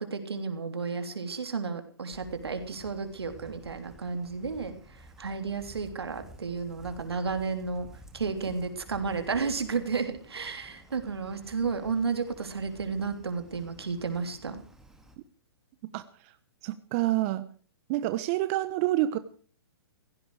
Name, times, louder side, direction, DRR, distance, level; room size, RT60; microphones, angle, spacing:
voice 1, 0.0-7.9 8.1-14.6, right 5 dB, 85° right, 7 dB, 3.3 m, -32 dB
sound 1, 2.1-15.2, equal, 5° right, 2.2 m, -52 dB
voice 2, 15.9-16.3 16.6-17.4 17.9-19.2, right 15 dB, 35° right, 12 dB, 1.0 m, -28 dB
16.5 x 16.5 x 4.9 m, 0.42 s
hypercardioid pair, 135°, 13 cm